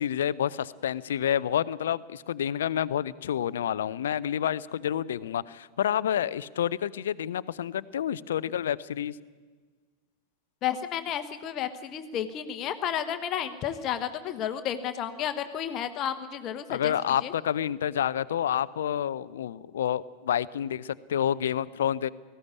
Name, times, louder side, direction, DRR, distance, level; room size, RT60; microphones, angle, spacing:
voice 1, 0.0-9.2 16.7-22.1, left 10 dB, 60° left, 18 dB, 0.6 m, -29 dB
voice 2, 10.6-16.9 17.2-17.3, left 9 dB, 35° left, 8 dB, 1.2 m, -32 dB
19.5 x 15.0 x 9.6 m, 1.5 s
figure-of-eight pair, 90°, 0 cm